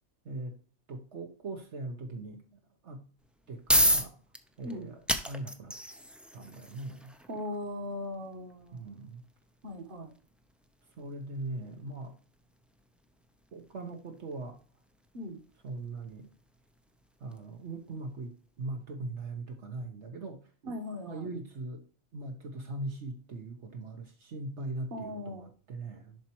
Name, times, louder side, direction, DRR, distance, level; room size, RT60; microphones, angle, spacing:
voice 1, 0.9-2.4 2.8-3.1 3.5-4.2 4.6-5.8 6.3-7.1 8.7-9.2 11.0-12.1 13.5-14.6 15.6-16.3 17.2-20.4 21.1-21.8 22.1-26.2, right 2 dB, 70° right, 3 dB, 1.4 m, -40 dB
sound 1, 3.2-18.1, equal, ahead, 0.4 m, -35 dB
voice 2, 7.3-8.8 9.6-10.1 15.1-15.4 20.6-21.3 24.9-25.4, left 1 dB, 45° right, 5 dB, 1.4 m, -39 dB
11.0 x 4.3 x 3.0 m, 0.40 s
omnidirectional pair, 1.2 m